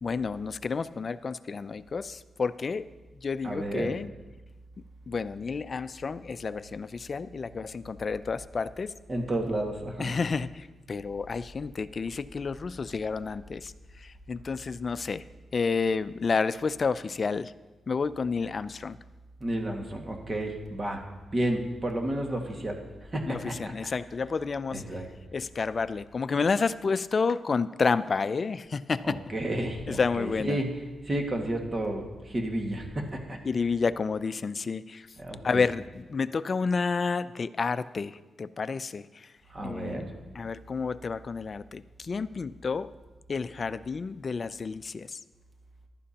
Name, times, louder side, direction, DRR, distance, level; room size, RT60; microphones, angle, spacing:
voice 1, 0.0-2.9 3.2-4.1 5.1-8.9 10.0-13.7 14.0-15.2 15.5-17.5 17.9-19.0 23.3-24.8 25.3-29.2 29.9-30.6 33.4-35.1 35.4-39.3 39.6-40.0 40.4-42.9 43.3-45.2, left 5 dB, 45° left, 13 dB, 0.4 m, -30 dB
voice 2, 3.4-3.9 9.1-10.1 19.4-21.0 21.3-23.9 24.7-25.1 29.0-30.8 31.0-33.4 35.2-35.6 39.5-40.1, right 1 dB, 35° right, 2 dB, 1.8 m, -31 dB
15.0 x 11.5 x 2.9 m, 1.2 s
cardioid pair, 80°, 0 cm